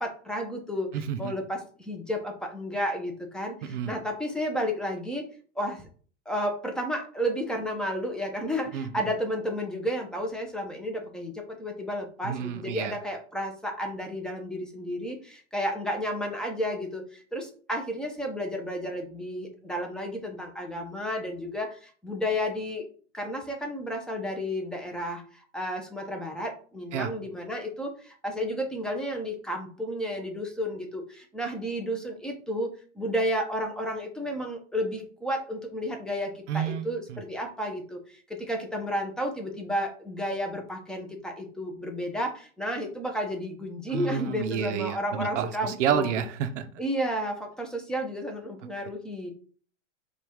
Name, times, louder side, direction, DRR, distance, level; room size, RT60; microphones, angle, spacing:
voice 1, 0.0-5.2 5.6-5.9 6.3-22.9 23.1-46.2 46.8-49.3, equal, ahead, 2 dB, 0.5 m, -32 dB
voice 2, 0.9-1.3 3.6-3.9 8.7-8.9 12.2-12.9 26.9-27.1 36.5-37.2 43.9-46.6, right 8 dB, 75° right, 8 dB, 0.6 m, -30 dB
4.8 x 2.4 x 3.5 m, 0.42 s
hypercardioid pair, 130°, 36 cm